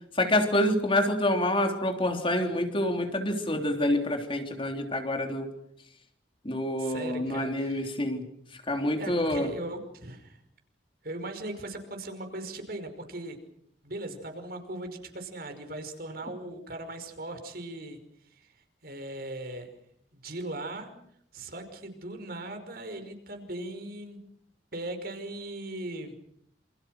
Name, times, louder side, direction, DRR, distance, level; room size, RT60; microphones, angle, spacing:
voice 1, 0.1-5.5 6.4-8.3 8.7-9.5, left 1 dB, 30° left, 5 dB, 3.4 m, -27 dB
voice 2, 6.8-7.9 8.7-10.4 11.0-13.4 13.8-18.0 18.4-19.7 20.1-20.9 21.3-24.2 24.7-26.1, right 1 dB, 60° right, 7 dB, 5.4 m, -39 dB
28.5 x 28.0 x 6.4 m, 0.69 s
head